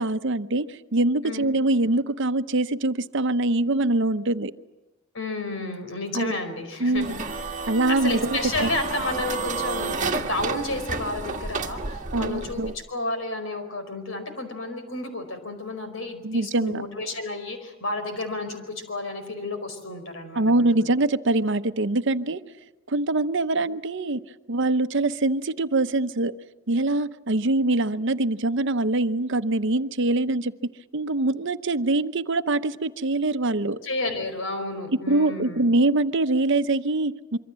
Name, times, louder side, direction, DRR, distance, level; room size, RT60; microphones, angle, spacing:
voice 1, 0.0-4.5 6.1-6.3 6.8-7.1 7.7-8.7 12.1-12.7 16.2-16.8 20.3-22.4 22.9-24.2 24.5-26.3 26.7-30.5 30.9-33.8 35.1-37.4, right 2 dB, 65° right, 12 dB, 0.9 m, -23 dB
voice 2, 5.1-12.6 12.9-20.9 33.8-35.6, left 2 dB, 75° left, 7 dB, 4.8 m, -31 dB
sound 1, 7.0-12.8, right 3 dB, 40° right, 1.8 m, -31 dB
25.5 x 24.0 x 7.6 m, 1.2 s
head